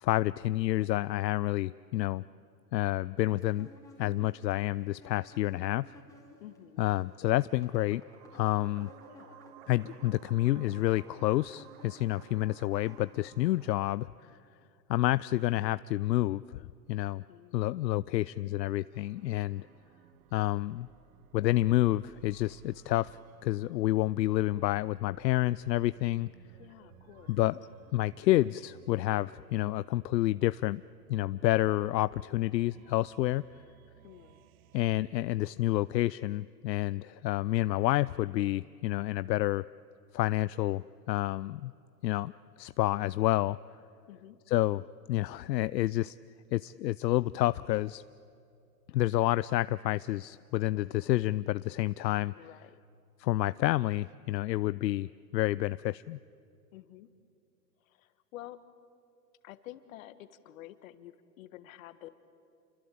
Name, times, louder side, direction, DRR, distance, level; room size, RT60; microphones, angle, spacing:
voice 1, 0.0-2.2 2.7-3.7 4.0-5.9 6.8-8.0 8.3-8.9 9.7-14.4 14.9-17.2 17.5-19.7 20.3-20.9 21.3-26.3 27.3-27.6 27.9-30.8 31.1-33.4 34.7-39.6 40.1-41.7 42.0-42.3 42.6-43.6 44.5-44.8 45.1-46.1 46.5-48.0 48.9-52.3 53.2-56.2, left 16 dB, 80° left, 17 dB, 0.6 m, -29 dB
sound 1, 3.4-6.6 6.8-13.5, equal, 5° left, 4.1 m, -56 dB
voice 2, 6.4-6.9 9.1-9.5 17.3-17.9 26.6-27.4 34.0-34.4 44.1-44.4 52.4-52.8 56.7-57.1 57.8-58.6 59.4-62.1, left 14 dB, 50° left, 12 dB, 1.6 m, -50 dB
sound 2, 7.3-14.0, right 14 dB, 35° right, 0.7 m, -55 dB
sound 3, 18.9-35.0, right 12 dB, 55° right, 1.2 m, -59 dB
28.0 x 24.5 x 8.6 m, 2.5 s
hypercardioid pair, 140°, 50 cm